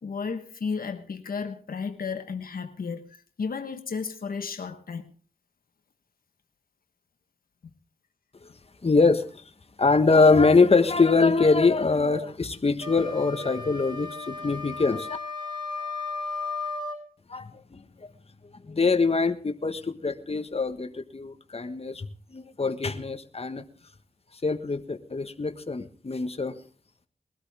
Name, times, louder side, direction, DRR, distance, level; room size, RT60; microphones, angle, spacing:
voice 1, 0.0-5.0, left 5 dB, 85° left, 1.3 m, -33 dB
voice 2, 8.8-9.3 9.8-15.2 17.3-17.8 18.7-23.6 24.4-26.6, left 4 dB, 45° left, 1.4 m, -23 dB
sound 1, 12.8-17.0, left 3 dB, 30° right, 5.2 m, -35 dB
21.0 x 13.0 x 3.5 m
cardioid pair, 50°, 15 cm